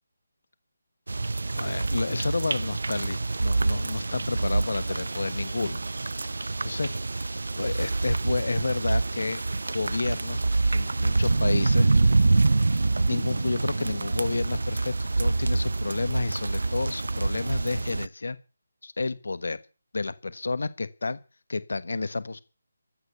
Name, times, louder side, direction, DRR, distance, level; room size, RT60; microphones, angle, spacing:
sound 1, 1.1-18.1, right 3 dB, 80° right, 0.7 m, -26 dB
voice 1, 1.5-5.8 6.6-6.9 7.6-9.4 9.7-10.4 10.7-11.9 13.1-18.4 18.8-19.6 19.9-21.2 21.5-22.4, left 3 dB, 75° left, 15 dB, 1.3 m, -30 dB
15.0 x 12.0 x 6.9 m, 0.34 s
figure-of-eight pair, 165°, 0 cm